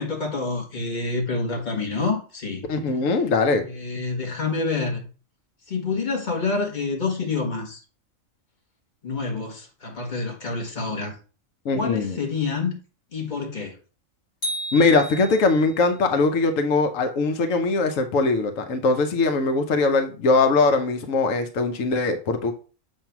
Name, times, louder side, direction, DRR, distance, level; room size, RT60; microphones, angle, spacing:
voice 1, 0.0-2.6 3.6-5.0 5.7-7.8 9.0-11.2 11.7-12.8 13.1-13.8, left 4 dB, 35° left, 1.6 m, -27 dB
voice 2, 2.7-3.6 11.6-12.2 14.7-22.5, left 3 dB, 85° left, 1.2 m, -21 dB
sound 1, 14.4-15.8, equal, 55° left, 3.1 m, -32 dB
7.3 x 2.7 x 5.8 m
omnidirectional pair, 1.3 m